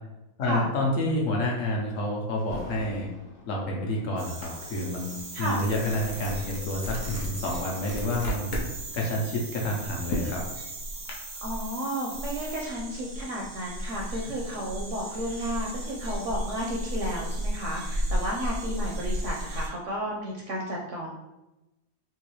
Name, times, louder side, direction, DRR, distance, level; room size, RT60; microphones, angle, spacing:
voice 1, 0.4-3.1 3.5-8.5 8.9-10.4 14.2-14.3, left 1 dB, 60° left, -2 dB, 1.0 m, -29 dB
Thunder, 2.4-7.3 8.0-8.2 8.9-11.7 12.0-12.1, right 1 dB, 35° left, 0.7 m, -48 dB
sound 1, 4.2-19.7, right 1 dB, 90° right, 1.5 m, -35 dB
sound 2, 4.4-4.6 5.0-8.7 9.1-11.1, equal, 80° left, 0.4 m, -35 dB
voice 2, 11.4-21.1, equal, 65° right, -2 dB, 0.8 m, -32 dB
3.8 x 2.4 x 3.0 m, 0.97 s
omnidirectional pair, 1.7 m